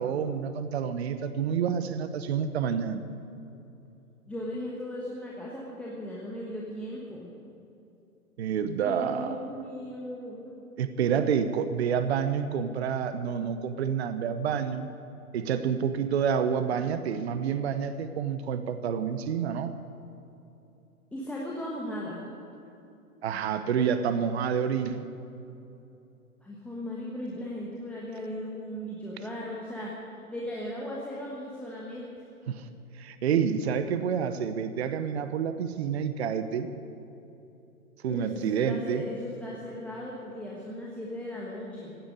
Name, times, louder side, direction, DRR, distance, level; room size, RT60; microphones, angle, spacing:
voice 1, 0.0-3.0 8.4-9.4 10.8-14.9 15.3-19.7 23.2-25.1 32.5-32.7 33.0-36.7 38.0-39.0, right 7 dB, 45° right, 11 dB, 1.0 m, -28 dB
voice 2, 4.3-7.3 8.8-10.5 21.1-22.2 26.4-29.9 30.3-32.1 38.1-42.0, left 1 dB, 5° left, -5 dB, 1.2 m, -37 dB
16.0 x 8.9 x 9.9 m, 2.9 s
figure-of-eight pair, 135°, 44 cm